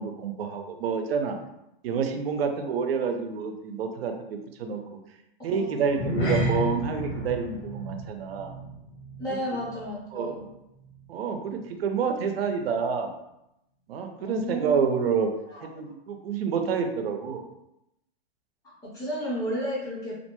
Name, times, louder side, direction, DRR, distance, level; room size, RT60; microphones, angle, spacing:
voice 1, 0.0-1.4 1.8-4.8 5.4-8.5 9.3-9.4 10.1-10.4 11.1-13.1 13.9-15.3 15.6-17.4, right 6 dB, 80° right, 5 dB, 0.5 m, -28 dB
voice 2, 5.5-6.2 9.2-10.5 14.2-15.1 15.5-15.7 18.6-20.1, equal, 10° left, -6 dB, 0.5 m, -33 dB
sound 1, 5.8-10.5 10.7-11.0 11.5-11.6, equal, 70° left, 1.3 m, -32 dB
2.5 x 2.2 x 2.8 m, 0.85 s
hypercardioid pair, 150°, 30 cm